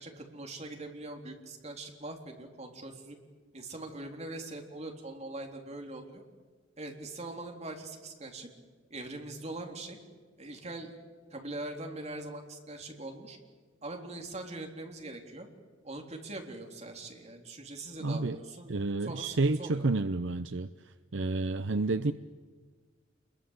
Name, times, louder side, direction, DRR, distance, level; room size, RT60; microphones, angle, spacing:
voice 1, 0.0-3.2 3.5-6.2 6.8-8.5 8.9-10.0 10.4-10.9 11.3-13.4 13.8-15.5 15.8-19.9, right 2 dB, 35° right, 3 dB, 3.7 m, -42 dB
voice 2, 18.0-18.4 18.7-20.7 21.1-22.1, right 3 dB, 65° right, 11 dB, 0.7 m, -29 dB
28.0 x 22.5 x 8.3 m, 1.5 s
head